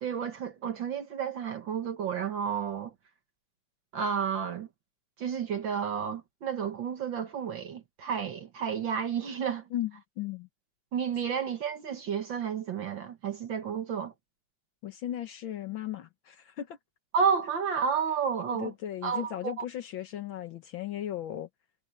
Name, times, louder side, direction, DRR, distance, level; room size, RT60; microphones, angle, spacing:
voice 1, 0.0-2.9 3.9-4.7 5.2-9.7 10.9-14.1 17.1-18.7 19.0-19.5, right 7 dB, 55° right, 1.4 m, -31 dB
voice 2, 10.2-10.5 14.8-16.8 18.6-21.5, left 11 dB, 85° left, 1.1 m, -36 dB
omnidirectional pair, 3.7 m